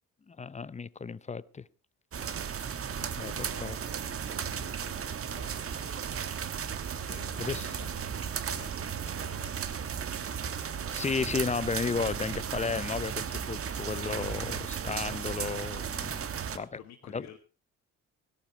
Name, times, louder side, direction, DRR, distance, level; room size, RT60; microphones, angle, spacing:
voice 1, 0.3-1.7 3.2-3.3 3.6-3.8 7.4-7.7 10.9-16.3 16.5-16.8 17.1-17.3, left 5 dB, 25° left, 0.6 m, -33 dB
sound 1, 2.1-16.6, right 7 dB, 50° right, 1.3 m, -35 dB
voice 2, 2.9-5.6 7.0-9.8 16.5-17.4, left 8 dB, 70° left, 2.2 m, -51 dB
16.5 x 12.0 x 4.4 m
cardioid pair, 90°, 30 cm